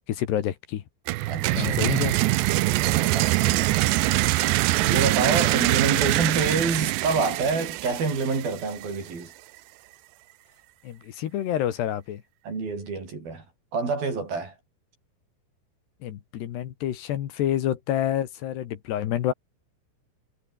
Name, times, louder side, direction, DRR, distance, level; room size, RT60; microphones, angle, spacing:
voice 1, 0.1-0.8 1.5-2.2 10.8-12.2 16.0-19.3, left 11 dB, 70° left, 3.6 m, -28 dB
sound 1, 1.1-8.8, right 18 dB, 80° right, 2.9 m, -23 dB
voice 2, 1.3-1.8 2.7-4.3 4.8-9.3 12.4-13.4 13.7-14.5, right 4 dB, 55° right, 8.5 m, -28 dB
omnidirectional pair, 5.2 m